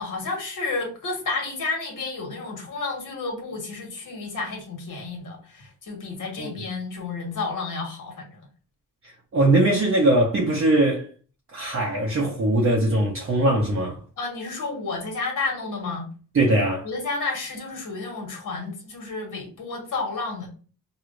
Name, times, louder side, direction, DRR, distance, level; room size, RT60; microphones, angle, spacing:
voice 1, 0.0-8.4 14.2-16.1 16.8-20.5, left 3 dB, 60° left, 1.4 m, -31 dB
voice 2, 9.0-11.1 11.5-14.0 16.3-16.9, right 1 dB, 40° right, 0.6 m, -21 dB
4.6 x 2.3 x 2.5 m
wide cardioid pair, 145°, 34 cm